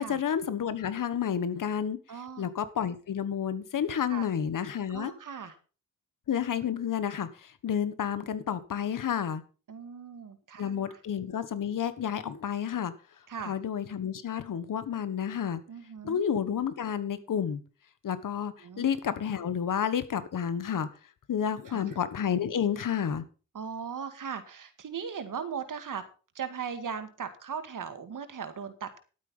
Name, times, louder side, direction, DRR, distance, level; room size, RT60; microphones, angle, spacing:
voice 1, 0.0-2.0 2.4-5.1 6.3-9.4 10.6-12.9 13.4-15.6 16.0-17.6 18.0-20.9 21.3-23.2, left 8 dB, 85° left, 1.4 m, -30 dB
voice 2, 2.1-2.5 4.1-4.3 4.9-5.6 9.7-11.0 13.3-13.6 15.7-16.2 18.6-18.8 21.7-22.0 23.5-26.0 26.3-29.0, right 6 dB, 80° right, 2.1 m, -38 dB
12.0 x 9.0 x 5.4 m
cardioid pair, 60°, 31 cm